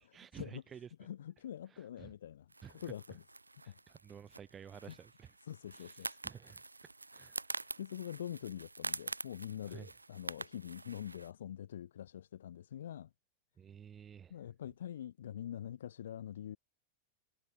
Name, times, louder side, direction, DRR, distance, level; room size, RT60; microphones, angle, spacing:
voice 1, 0.0-0.9 1.7-2.1 2.6-2.9 3.6-5.3 5.7-7.4 9.7-9.9 13.6-14.4, right 8 dB, 25° right, 0.8 m, -52 dB
voice 2, 1.0-3.2 3.7-3.8 4.8-4.9 5.4-6.2 7.5-13.1 14.3-16.6, left 10 dB, 60° left, 0.4 m, -45 dB
sound 1, 2.5-11.3, right 3 dB, 80° right, 0.8 m, -46 dB
figure-of-eight pair, 90°, 0 cm